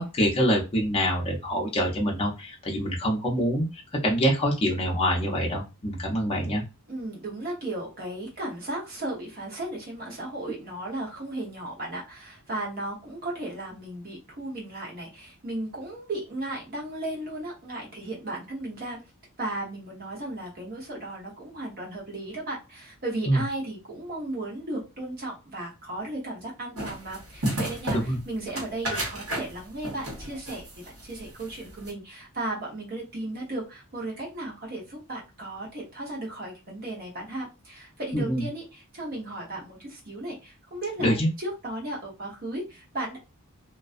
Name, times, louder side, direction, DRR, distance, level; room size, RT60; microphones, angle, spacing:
voice 1, 0.0-3.7 4.0-6.6 23.3-23.4 27.9-28.2 38.1-38.4 41.0-41.3, equal, 25° left, -1 dB, 0.5 m, -25 dB
voice 2, 6.9-19.0 19.4-43.2, right 1 dB, 45° right, -3 dB, 0.9 m, -35 dB
sound 1, 26.8-31.9, right 1 dB, 75° right, 1.1 m, -33 dB
2.4 x 2.2 x 2.4 m, 0.28 s
head